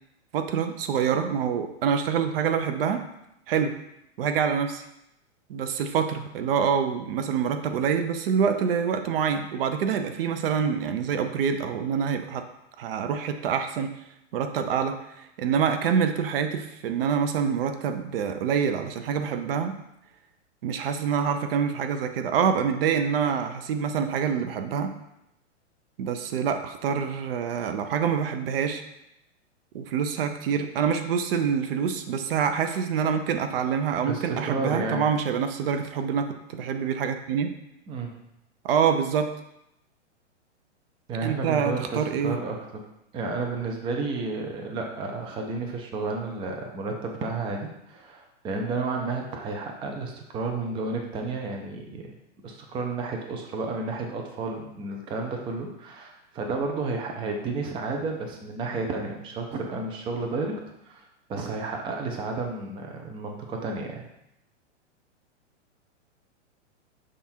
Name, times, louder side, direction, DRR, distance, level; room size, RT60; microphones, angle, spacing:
voice 1, 0.3-3.1 3.5-3.7 4.2-4.8 5.5-12.4 12.8-13.9 14.3-19.8 20.6-25.0 26.0-28.8 29.7-37.5 38.6-39.3 41.2-42.4, right 7 dB, 50° right, 7 dB, 0.7 m, -26 dB
voice 2, 34.0-35.0 37.9-38.2 41.1-42.6 43.1-52.0 52.4-64.0, right 3 dB, 15° right, 2 dB, 0.5 m, -31 dB
6.8 x 3.7 x 4.4 m, 0.83 s
hypercardioid pair, 135°, 37 cm